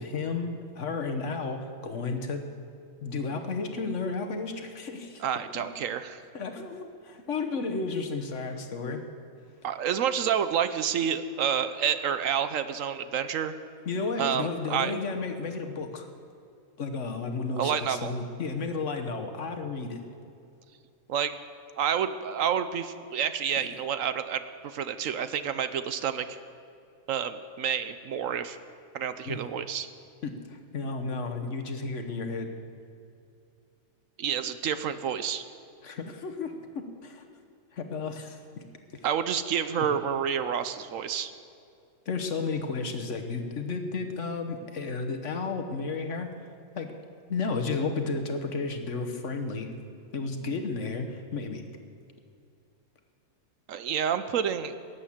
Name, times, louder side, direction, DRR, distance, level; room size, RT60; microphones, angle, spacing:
voice 1, 0.0-2.5 3.0-5.2 5.5-5.7 6.3-9.0 13.8-16.1 16.8-20.0 23.6-23.7 29.3-29.4 30.2-32.5 35.8-37.2 37.7-38.6 38.9-39.1 39.8-39.9 42.1-46.3 46.7-46.9 47.3-49.7 50.1-51.6, left 4 dB, 55° left, 6 dB, 1.4 m, -33 dB
voice 2, 5.2-6.2 9.6-13.5 14.2-14.9 17.6-18.1 21.1-21.3 21.8-26.4 27.1-28.6 28.9-29.9 34.2-35.4 39.0-41.3 53.7-54.7, right 8 dB, 70° right, 11 dB, 1.0 m, -29 dB
18.0 x 8.3 x 7.3 m, 2.5 s
omnidirectional pair, 1.5 m